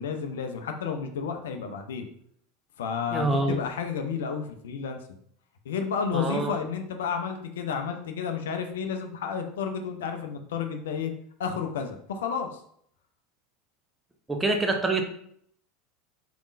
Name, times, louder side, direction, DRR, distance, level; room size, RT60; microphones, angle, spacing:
voice 1, 0.0-2.1 2.8-5.0 5.6-11.1 11.4-12.6, left 6 dB, 65° left, 5 dB, 0.5 m, -31 dB
voice 2, 3.1-3.6 6.1-6.5 14.3-15.0, right 2 dB, 10° right, 4 dB, 0.7 m, -25 dB
4.8 x 3.5 x 2.4 m, 0.65 s
figure-of-eight pair, 80°, 0 cm